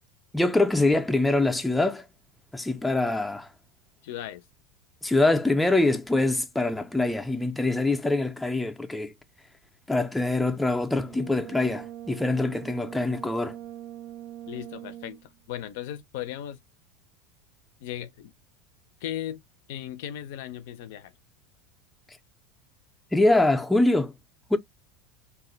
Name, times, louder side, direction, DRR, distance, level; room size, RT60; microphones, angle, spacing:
voice 1, 0.3-2.1 2.5-3.5 5.0-9.1 9.9-13.6 23.1-24.1 24.5-24.6, left 2 dB, 5° left, 0.4 m, -24 dB
voice 2, 4.0-4.4 14.5-16.6 17.8-18.3 19.0-19.4 19.7-21.1, left 11 dB, 75° left, 0.4 m, -36 dB
Brass instrument, 11.0-15.3, right 12 dB, 60° right, 0.3 m, -42 dB
2.4 x 2.0 x 3.8 m
supercardioid pair, 120°, 0 cm